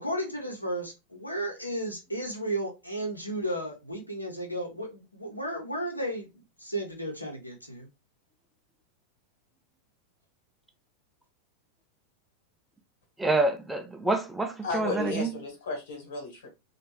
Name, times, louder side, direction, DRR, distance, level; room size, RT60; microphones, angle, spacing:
voice 1, 0.0-6.3 6.6-7.9, right 1 dB, 85° left, 1.0 m, -34 dB
voice 2, 13.2-15.3, right 2 dB, 5° right, 0.5 m, -27 dB
voice 3, 14.6-16.5, left 3 dB, 65° left, 1.4 m, -33 dB
3.1 x 2.5 x 3.0 m
figure-of-eight pair, 90°, 0 cm